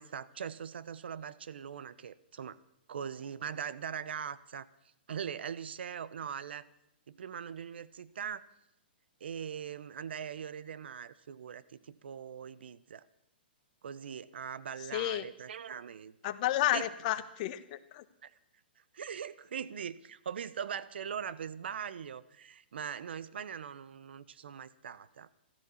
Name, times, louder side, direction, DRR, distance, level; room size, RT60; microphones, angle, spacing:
voice 1, 0.0-2.6 2.9-4.7 5.1-6.6 7.1-8.4 9.2-13.0 13.8-16.1 16.7-16.8 18.2-18.3 18.9-25.3, right 7 dB, 75° right, 17 dB, 0.9 m, -41 dB
voice 2, 14.9-15.3 16.2-18.0, left 14 dB, 45° left, 11 dB, 1.3 m, -31 dB
15.5 x 13.0 x 7.2 m, 0.80 s
hypercardioid pair, 140°, 6 cm